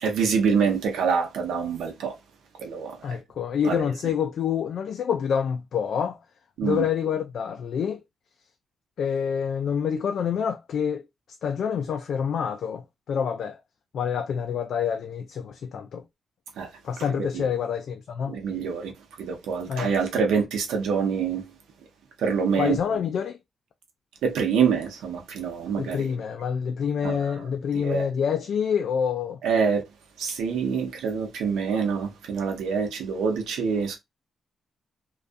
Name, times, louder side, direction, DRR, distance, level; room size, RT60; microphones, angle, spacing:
voice 1, 0.0-2.1 2.6-3.1 3.6-3.9 6.6-6.9 16.6-16.7 17.3-17.5 18.3-18.9 19.2-21.4 22.2-22.8 24.2-26.1 27.0-27.3 27.7-28.1 29.4-29.8 30.2-34.0, right 6 dB, 85° right, 0.7 m, -26 dB
voice 2, 3.0-6.2 6.6-8.0 9.0-11.0 11.4-13.6 13.9-16.0 16.8-18.4 19.7-19.9 22.6-23.4 25.8-29.4, left 7 dB, 70° left, 0.3 m, -27 dB
2.4 x 2.3 x 2.5 m
cardioid pair, 65°, 0 cm